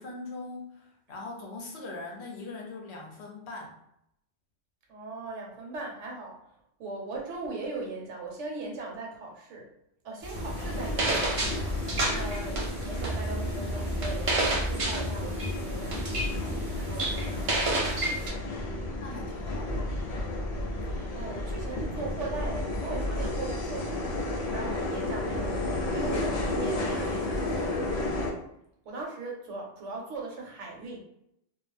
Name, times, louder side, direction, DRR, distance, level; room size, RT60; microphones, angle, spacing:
voice 1, 0.0-3.8 19.0-19.8, left 3 dB, 65° left, 0 dB, 0.8 m, -41 dB
voice 2, 4.9-6.4 6.8-9.7 10.0-11.4 12.1-18.6 20.5-24.1 24.4-27.9 28.8-31.0, right 3 dB, 70° right, -1 dB, 1.0 m, -39 dB
sound 1, 10.2-18.3, right 2 dB, 50° right, 0.4 m, -31 dB
sound 2, 10.3-28.3, left 2 dB, 90° left, 0.3 m, -32 dB
2.4 x 2.0 x 3.1 m, 0.76 s
omnidirectional pair, 1.3 m